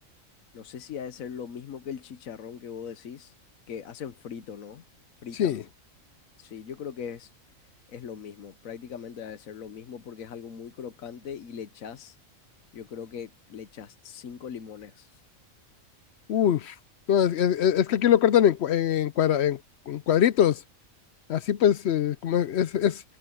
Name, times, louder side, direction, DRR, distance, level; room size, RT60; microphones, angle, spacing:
voice 1, 0.5-3.3 3.7-4.8 5.2-5.7 6.4-7.3 7.9-12.2 12.7-15.2, left 7 dB, 80° left, 1.4 m, -40 dB
voice 2, 16.3-16.7 17.1-19.6 19.9-20.6 21.3-23.0, left 10 dB, 65° left, 0.7 m, -22 dB
omnidirectional pair, 1.4 m